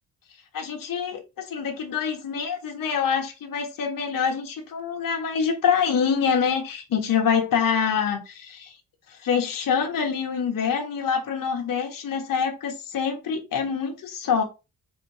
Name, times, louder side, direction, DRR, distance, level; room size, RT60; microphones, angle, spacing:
voice 1, 0.5-8.8 9.1-14.4, left 6 dB, 60° left, 1.1 m, -25 dB
5.0 x 2.6 x 3.3 m
cardioid pair, 95°, 38 cm